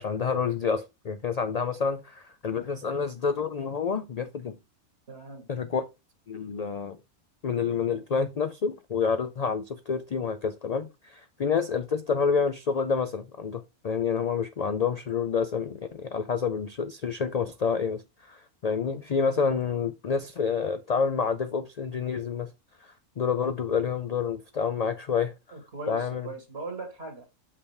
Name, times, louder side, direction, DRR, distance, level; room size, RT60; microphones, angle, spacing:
voice 1, 0.0-4.6 5.5-5.9 6.3-7.0 7.4-22.5 22.8-25.3 25.9-26.3, left 6 dB, 60° left, 0.4 m, -28 dB
voice 2, 5.1-5.5 25.5-27.3, right 3 dB, 55° right, 2.1 m, -39 dB
6.4 x 5.8 x 3.3 m
omnidirectional pair, 1.3 m